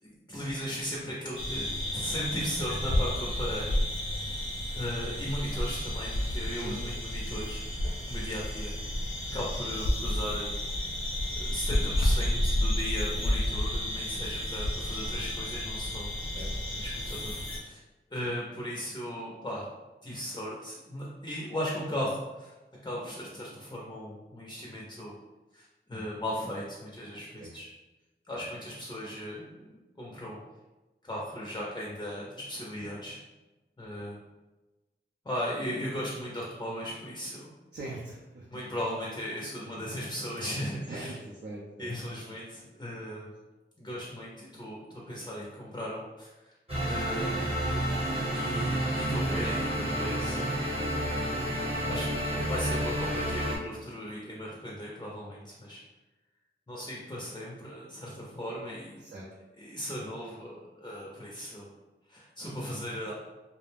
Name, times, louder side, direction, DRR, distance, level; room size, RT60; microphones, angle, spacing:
voice 1, 0.0-3.8 4.7-8.7 9.3-10.5 11.3-16.1 16.4-16.5 16.7-17.8 18.1-19.6 20.0-22.6 22.8-25.1 25.5-27.7 28.2-30.4 31.0-33.2 33.8-34.2 35.2-37.5 38.5-41.2 41.8-43.3 43.8-46.5 46.8-47.4 48.3-50.6 51.3-55.8 56.7-59.0 59.6-61.7 62.1-63.1, equal, 20° left, -4 dB, 0.5 m, -37 dB
sound 1, 1.4-17.6, left 1 dB, 75° left, 0.7 m, -31 dB
voice 2, 37.7-38.5 40.9-42.2 51.2-51.5 59.0-59.3, right 1 dB, 55° right, -5 dB, 0.5 m, -42 dB
sound 2, 46.7-53.6, right 1 dB, 30° right, 0.9 m, -30 dB
2.3 x 2.0 x 3.3 m, 1.1 s
wide cardioid pair, 55°, 20 cm